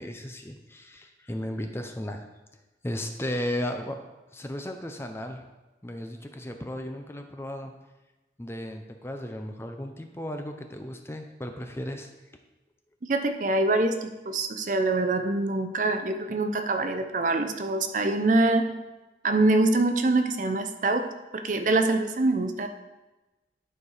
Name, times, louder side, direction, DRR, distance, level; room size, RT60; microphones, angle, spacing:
voice 1, 0.0-2.3 2.8-4.0 4.3-5.4 5.8-7.7 8.4-12.1, left 1 dB, 15° left, 5 dB, 0.6 m, -35 dB
voice 2, 13.0-18.7 19.2-21.1 21.3-22.7, right 2 dB, 45° right, 6 dB, 0.6 m, -24 dB
11.0 x 4.6 x 4.9 m, 1.1 s
head